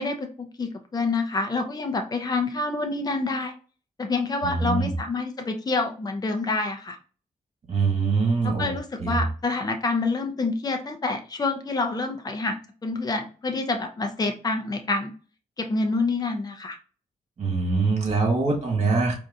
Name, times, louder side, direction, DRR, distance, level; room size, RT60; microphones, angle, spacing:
voice 1, 0.0-3.5 4.0-7.0 8.4-15.1 15.6-16.8, left 3 dB, 30° left, 5 dB, 0.6 m, -27 dB
voice 2, 4.4-4.9 7.7-9.2 17.4-19.1, right 4 dB, 50° right, 0 dB, 1.8 m, -24 dB
4.6 x 2.6 x 2.7 m, 0.38 s
wide cardioid pair, 110°, 14 cm